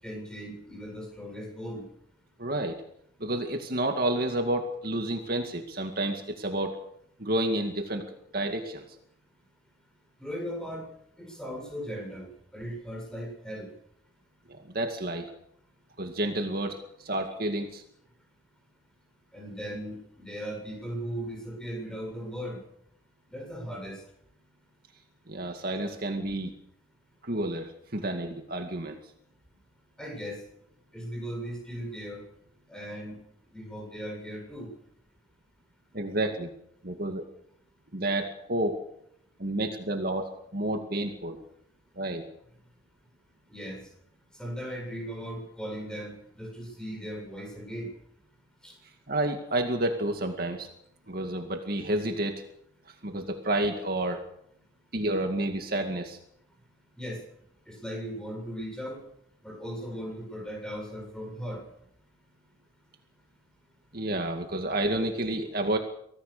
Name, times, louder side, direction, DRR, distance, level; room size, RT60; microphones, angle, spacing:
voice 1, 0.0-1.8 10.2-10.9 11.2-12.3 12.5-13.7 19.3-22.6 23.3-24.0 30.0-30.4 30.9-32.2 32.7-33.2 33.5-34.7 43.5-43.9 44.4-47.9 48.6-48.7 57.0-57.2 57.7-59.0 59.4-61.6, equal, 5° left, 1 dB, 7.9 m, -37 dB
voice 2, 2.4-2.8 3.2-6.8 7.2-8.0 8.3-8.9 14.5-15.3 16.0-17.8 25.3-26.5 27.2-29.0 35.9-36.5 36.8-37.3 37.9-38.8 39.4-41.4 42.0-42.2 48.8-50.7 51.1-52.4 52.9-54.2 54.9-56.2 63.9-65.8, right 1 dB, 50° right, 4 dB, 2.2 m, -30 dB
25.5 x 18.0 x 6.8 m, 0.74 s
head